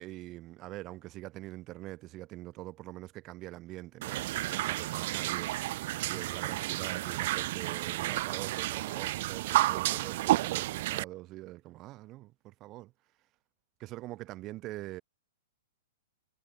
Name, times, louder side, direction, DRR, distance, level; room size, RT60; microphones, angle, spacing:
voice 1, 0.0-12.9 13.8-15.0, right 17 dB, 20° right, 2.2 m, -44 dB
sound 1, 4.0-11.0, right 17 dB, 40° right, 1.8 m, -31 dB
hypercardioid pair, 170°, 0 cm